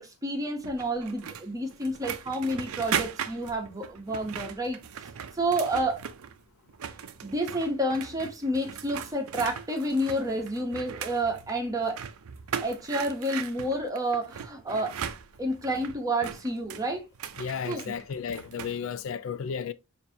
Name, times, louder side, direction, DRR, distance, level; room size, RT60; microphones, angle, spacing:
voice 1, 0.0-4.8 5.3-6.0 7.2-12.0 12.6-15.0 15.4-17.1 17.7-17.9, right 1 dB, 15° right, 0.8 m, -29 dB
sound 1, 0.6-6.4 6.7-18.8, right 8 dB, 80° right, 0.5 m, -38 dB
voice 2, 17.4-19.7, left 7 dB, 65° left, 0.3 m, -33 dB
6.6 x 2.6 x 2.6 m
head